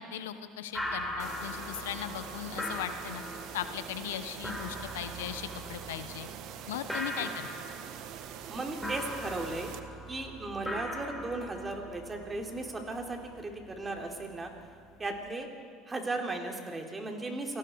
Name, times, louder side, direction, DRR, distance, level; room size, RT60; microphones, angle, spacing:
voice 1, 0.0-3.2 3.5-6.3 6.7-7.5, left 10 dB, 80° left, 11 dB, 1.1 m, -38 dB
sound 1, 0.7-15.3, equal, ahead, 4.8 m, -41 dB
sound 2, 1.2-9.8, right 10 dB, 60° right, 1.4 m, -44 dB
voice 2, 8.5-9.7 10.1-14.5 15.0-15.5 15.9-17.6, right 2 dB, 20° right, 2 dB, 3.6 m, -36 dB
28.5 x 19.0 x 4.8 m, 2.4 s
hypercardioid pair, 75°, 0 cm